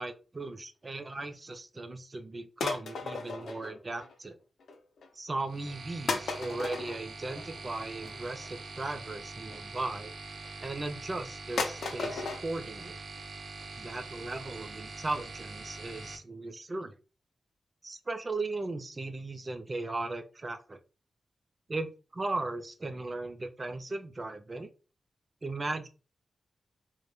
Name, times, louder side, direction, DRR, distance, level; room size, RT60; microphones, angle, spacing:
voice 1, 0.0-4.4 5.1-10.1 10.6-13.0 13.8-16.9 17.8-20.8 21.7-24.7 25.4-25.9, right 2 dB, 30° right, 6 dB, 0.3 m, -37 dB
sound 1, 2.6-4.3 4.6-5.1 5.7-5.8 6.1-9.6 10.3-10.9 11.2-11.3 11.6-12.4 12.8-12.9 13.1-13.2 13.6-13.7 13.9-14.0 14.4-14.5 14.8-14.9 15.3-15.4 15.7-15.8, left 4 dB, 90° left, 0.4 m, -36 dB
sound 2, 5.5-16.2, right 3 dB, 70° right, 0.6 m, -44 dB
2.1 x 2.1 x 3.0 m, 0.34 s
wide cardioid pair, 145°, 0 cm